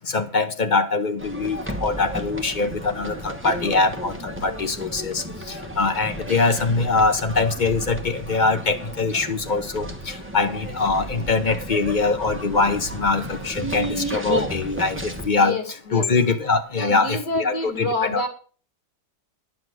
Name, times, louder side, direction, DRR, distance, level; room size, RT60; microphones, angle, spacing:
voice 1, 0.1-15.6 15.9-18.3, left 3 dB, 35° left, 7 dB, 0.8 m, -23 dB
sound 1, 1.2-15.3, equal, 10° right, 1.0 m, -33 dB
voice 2, 15.3-16.4 16.8-18.3, left 2 dB, 65° left, 5 dB, 2.7 m, -28 dB
10.0 x 6.4 x 7.7 m, 0.41 s
omnidirectional pair, 1.9 m